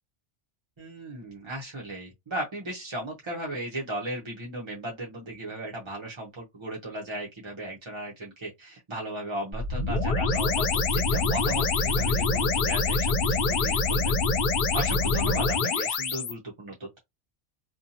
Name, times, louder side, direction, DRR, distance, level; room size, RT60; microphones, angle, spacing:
voice 1, 0.8-14.2 14.7-17.0, right 1 dB, 35° right, 0.5 m, -36 dB
sound 1, 9.5-16.3, left 3 dB, 60° left, 0.6 m, -25 dB
2.6 x 2.2 x 2.6 m
omnidirectional pair, 1.2 m